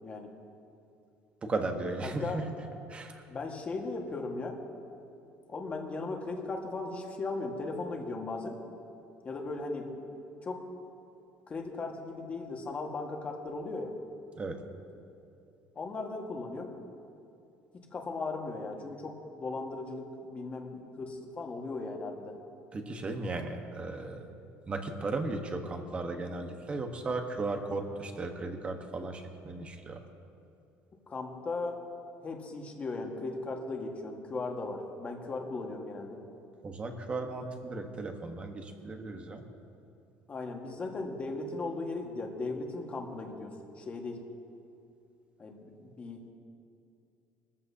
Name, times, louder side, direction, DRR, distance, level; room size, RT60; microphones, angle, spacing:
voice 1, 0.0-0.3 2.2-2.4 3.3-4.6 5.5-8.6 9.2-9.9 10.4-10.6 11.5-13.9 15.7-16.7 17.9-22.3 31.1-31.8 32.2-36.2 40.3-44.2 45.4-46.2, left 3 dB, 25° left, 1 dB, 1.7 m, -37 dB
voice 2, 1.4-2.4 2.9-3.2 14.4-14.6 22.7-24.3 24.7-30.0 36.6-39.4, right 3 dB, 25° right, 5 dB, 1.2 m, -36 dB
21.5 x 14.5 x 2.8 m, 2.7 s
cardioid pair, 145°, 5 cm